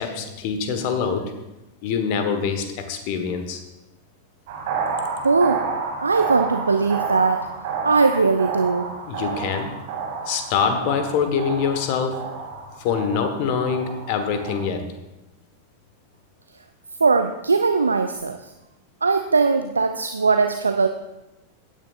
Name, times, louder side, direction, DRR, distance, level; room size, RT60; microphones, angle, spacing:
voice 1, 0.0-1.3 1.8-3.6 9.1-9.7 10.2-12.2 12.8-14.9, left 6 dB, 45° left, 8 dB, 1.2 m, -24 dB
sound 1, 4.5-14.6, right 5 dB, 50° right, 2.4 m, -30 dB
voice 2, 5.2-5.7 6.0-7.5 7.8-8.9 17.0-18.5 19.0-20.9, right 4 dB, 75° right, 7 dB, 0.4 m, -20 dB
16.5 x 9.2 x 2.5 m, 0.96 s
figure-of-eight pair, 90°, 0 cm